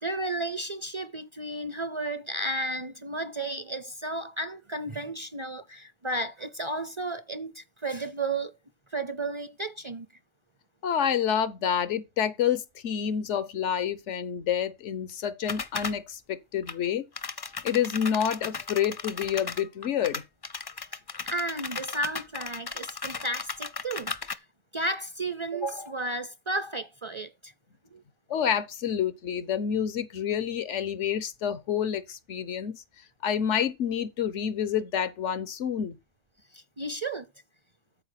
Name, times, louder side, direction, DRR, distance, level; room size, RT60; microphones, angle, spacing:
voice 1, 0.0-8.5 8.9-10.1 21.2-24.4 24.7-27.5 27.9-28.0 36.5-37.3, right 2 dB, 35° right, 0.5 m, -33 dB
voice 2, 10.8-17.1 17.6-20.2 28.3-32.8 33.2-36.0, left 8 dB, 90° left, 1.2 m, -28 dB
sound 1, 15.5-16.0 16.6-16.7 17.2-24.3, left 5 dB, 30° left, 0.4 m, -36 dB
13.5 x 4.8 x 5.7 m
omnidirectional pair, 1.2 m